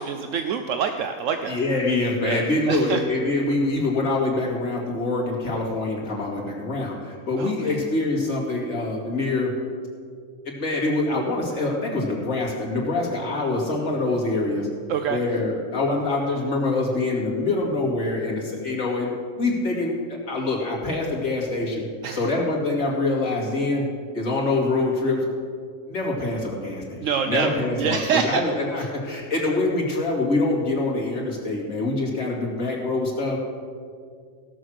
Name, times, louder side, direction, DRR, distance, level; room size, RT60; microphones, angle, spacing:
voice 1, 0.0-1.6 2.2-2.4 2.7-3.0 7.4-7.7 14.9-15.2 22.0-22.2 27.0-28.4 28.8-28.9, right 7 dB, 70° right, 7 dB, 1.0 m, -26 dB
voice 2, 1.5-9.5 10.4-14.7 15.1-19.1 19.4-21.9 22.1-23.9 24.1-25.2 25.9-27.0 27.3-33.4, left 2 dB, 75° left, -3 dB, 2.7 m, -25 dB
16.5 x 6.3 x 6.4 m, 2.1 s
omnidirectional pair, 1.4 m